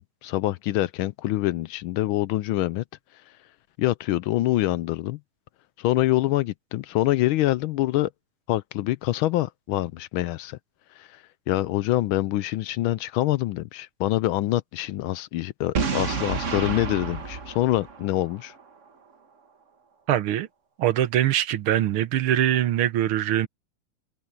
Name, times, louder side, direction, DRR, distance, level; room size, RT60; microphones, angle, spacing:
voice 1, 0.0-2.8 3.8-5.2 5.8-8.1 8.5-10.6 11.0-11.2 11.5-18.5, left 15 dB, 75° left, 1.3 m, -25 dB
Boom, 15.8-18.6, right 5 dB, 40° right, 1.6 m, -29 dB
voice 2, 20.1-20.5 20.8-23.5, right 11 dB, 80° right, 1.7 m, -23 dB
omnidirectional pair, 2.4 m